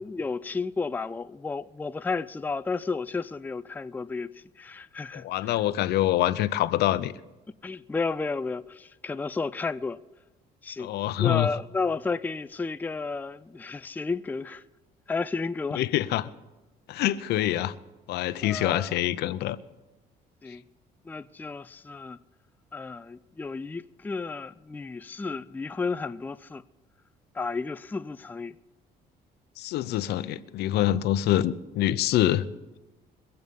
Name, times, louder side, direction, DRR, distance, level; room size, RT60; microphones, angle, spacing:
voice 1, 0.0-4.3 4.6-5.6 7.6-10.0 10.6-10.9 11.2-14.6 15.1-15.8 18.4-19.0 20.4-20.6 21.1-22.2 22.7-26.6 27.3-28.5, left 4 dB, 10° left, 0.4 m, -32 dB
voice 2, 5.1-7.1 10.8-11.5 15.7-16.3 16.9-17.7 18.1-19.6 29.6-32.4, left 13 dB, 75° left, 0.7 m, -25 dB
23.0 x 7.9 x 5.3 m
cardioid pair, 110°, 17 cm